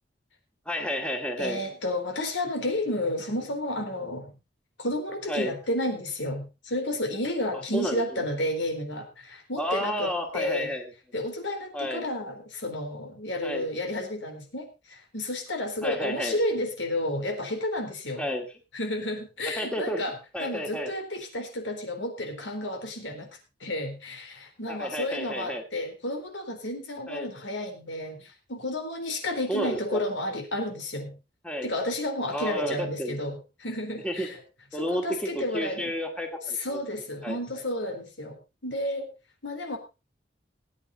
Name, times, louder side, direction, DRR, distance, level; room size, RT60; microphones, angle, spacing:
voice 1, 0.7-1.6 5.3-5.6 7.7-8.2 9.6-10.9 11.7-12.1 13.4-13.7 15.8-16.4 18.2-18.6 19.6-20.0 20.3-20.9 24.7-25.6 27.1-27.3 29.5-30.0 31.4-31.7 32.3-33.2 34.0-34.3 34.7-36.8 37.2-37.4, equal, 5° left, 3 dB, 2.1 m, -31 dB
voice 2, 1.4-4.3 4.8-10.7 11.1-18.2 18.7-20.1 20.4-23.3 23.6-31.2 31.6-34.4 34.8-35.9 36.6-38.4 38.6-39.1 39.4-39.8, left 1 dB, 80° left, 5 dB, 4.0 m, -31 dB
19.0 x 9.1 x 4.1 m, 0.29 s
head